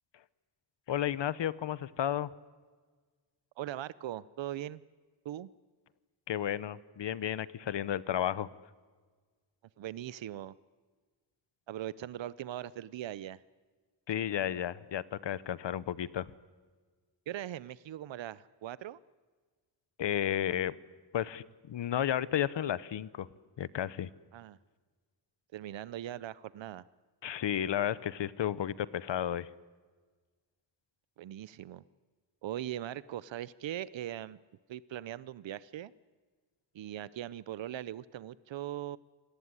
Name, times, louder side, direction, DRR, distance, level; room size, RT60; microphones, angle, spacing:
voice 1, 0.9-2.3 6.3-8.5 14.1-16.3 20.0-20.7 21.1-23.3 23.6-24.1 27.2-29.5, left 10 dB, 75° left, 19 dB, 0.9 m, -32 dB
voice 2, 3.6-4.8 5.2-5.5 9.8-10.5 11.7-13.4 17.3-19.0 24.3-24.6 25.5-26.8 31.2-31.8 32.4-34.4 34.7-35.9 36.7-39.0, right 12 dB, 90° right, 19 dB, 0.7 m, -40 dB
26.0 x 18.5 x 9.7 m, 1.4 s
wide cardioid pair, 145°, 44 cm